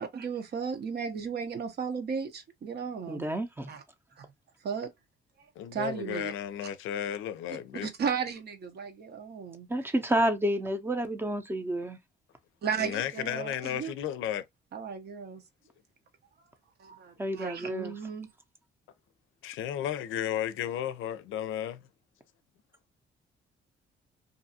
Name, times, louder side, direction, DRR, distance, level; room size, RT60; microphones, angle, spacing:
voice 1, 0.0-3.2 3.7-3.8 4.2-4.3 4.6-4.9 5.7-6.3 7.8-9.7 12.6-13.9 14.7-15.4 16.8-18.3, right 6 dB, 55° right, 0.8 m, -35 dB
voice 2, 3.1-3.7 9.7-12.0 17.2-17.9, right 1 dB, 10° right, 0.6 m, -29 dB
voice 3, 5.6-7.9 12.8-14.4 19.4-21.8, left 10 dB, 85° left, 0.5 m, -33 dB
2.6 x 2.4 x 2.7 m
cardioid pair, 90°, 20 cm